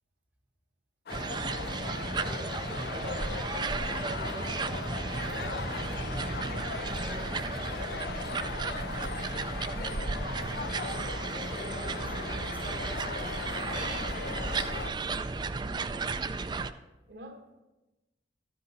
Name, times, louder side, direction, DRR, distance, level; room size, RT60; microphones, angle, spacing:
sound 1, 1.1-14.9, left 6 dB, 60° left, 0.4 m, -39 dB
sound 2, 1.1-16.7, right 3 dB, 25° right, 0.4 m, -34 dB
voice 1, 1.7-2.9 5.5-5.6 6.8-7.5 11.2-15.2, equal, 10° right, 0.8 m, -50 dB
sound 3, 2.7-15.2, left 2 dB, 90° left, 0.7 m, -57 dB
voice 2, 15.6-16.4 17.1-17.6, right 1 dB, 75° right, 1.3 m, -49 dB
13.5 x 9.6 x 4.1 m
head